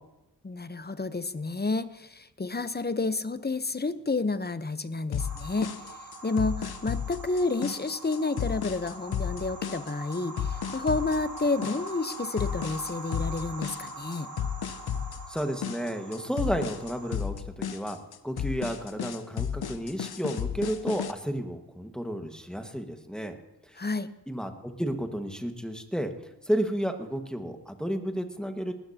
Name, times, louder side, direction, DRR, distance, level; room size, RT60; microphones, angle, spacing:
voice 1, 0.4-5.7 6.2-14.3 23.8-24.1, left 3 dB, 25° left, 12 dB, 0.9 m, -30 dB
sound 1, 5.1-21.1, left 8 dB, 65° left, 0.7 m, -33 dB
sound 2, 5.2-17.2, right 2 dB, 45° right, 1.9 m, -43 dB
voice 2, 15.3-18.0 18.2-23.3 23.7-23.8 24.3-26.1 26.4-28.7, equal, ahead, 5 dB, 1.6 m, -32 dB
19.0 x 13.5 x 2.9 m, 0.96 s
cardioid pair, 50°, 41 cm